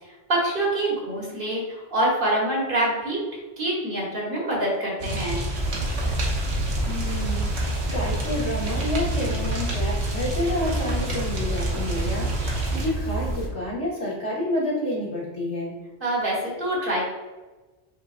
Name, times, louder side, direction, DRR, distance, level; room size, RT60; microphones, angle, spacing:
voice 1, 0.3-3.2 3.6-5.4 16.0-17.1, right 1 dB, 50° right, -4 dB, 1.6 m, -25 dB
sound 1, 5.0-12.9, right 1 dB, 70° right, 1.2 m, -29 dB
sound 2, 5.5-13.5, right 1 dB, 20° left, 0.8 m, -30 dB
voice 2, 6.9-7.5 7.9-12.3 12.7-15.7, left 1 dB, 75° left, -7 dB, 2.0 m, -29 dB
5.7 x 3.6 x 2.5 m, 1.2 s
omnidirectional pair, 1.2 m